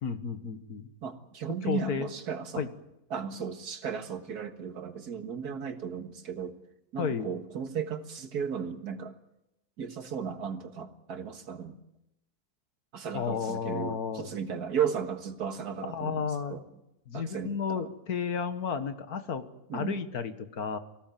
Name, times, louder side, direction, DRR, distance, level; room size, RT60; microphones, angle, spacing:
voice 1, 0.0-0.9 1.7-2.1 2.6-2.7 7.0-7.3 13.1-14.3 15.9-16.6 17.1-20.8, left 6 dB, 75° left, 9 dB, 1.9 m, -32 dB
voice 2, 1.0-2.7 3.1-6.6 6.9-9.2 9.8-11.8 12.9-16.6 17.1-17.9 19.7-20.0, right 7 dB, 75° right, 7 dB, 2.1 m, -35 dB
24.5 x 17.0 x 9.1 m, 0.87 s
omnidirectional pair, 1.7 m